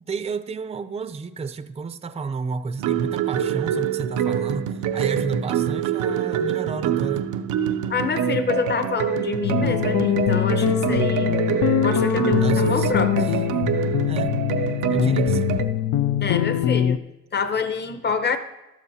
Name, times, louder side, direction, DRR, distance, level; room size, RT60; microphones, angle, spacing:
voice 1, 0.0-7.3 12.4-13.4 14.1-14.4 14.9-15.6, right 4 dB, 20° right, 10 dB, 0.5 m, -31 dB
sound 1, 2.8-15.6, right 8 dB, 90° right, 0.6 m, -25 dB
voice 2, 7.9-11.3 11.8-13.3 16.2-17.0 17.3-18.4, left 5 dB, 35° left, 9 dB, 1.0 m, -26 dB
sound 2, 9.4-17.0, left 11 dB, 80° left, 0.5 m, -23 dB
13.0 x 12.5 x 2.8 m, 1.0 s
cardioid pair, 90°, 30 cm